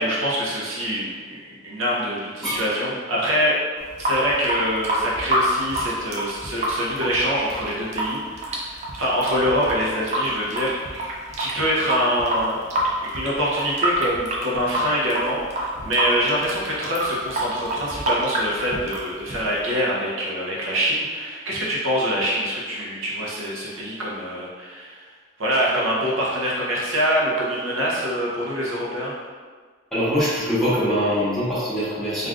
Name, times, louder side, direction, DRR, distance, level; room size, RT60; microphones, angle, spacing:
voice 1, 0.0-3.6 4.0-25.0 25.4-29.1, equal, 80° right, -5 dB, 0.7 m, -25 dB
Water tap faucet / Sink (filling or washing) / Drip, 3.8-19.7, right 1 dB, 35° right, 0.4 m, -27 dB
voice 2, 29.9-32.3, equal, ahead, -13 dB, 1.1 m, -23 dB
3.4 x 2.4 x 2.4 m, 1.5 s
head